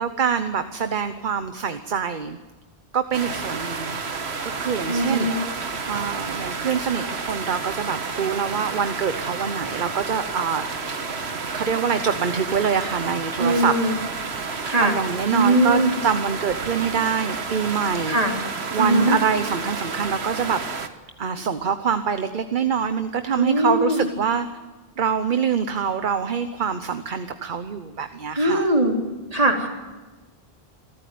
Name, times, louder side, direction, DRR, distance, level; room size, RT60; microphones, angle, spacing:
voice 1, 0.0-2.4 2.9-5.4 5.9-11.0 11.5-13.8 14.8-18.4 18.7-20.6 21.2-24.5 25.0-28.7, right 7 dB, 50° right, 9 dB, 1.0 m, -25 dB
sound 1, 3.1-20.9, right 4 dB, 80° right, 1.7 m, -31 dB
voice 2, 4.9-5.4 13.4-14.0 14.6-14.9 15.3-15.9 18.1-18.3 18.8-19.2 23.4-24.1 28.4-29.0 29.3-29.7, right 1 dB, 35° right, 1 dB, 3.7 m, -20 dB
26.5 x 13.5 x 9.3 m, 1.2 s
omnidirectional pair, 1.1 m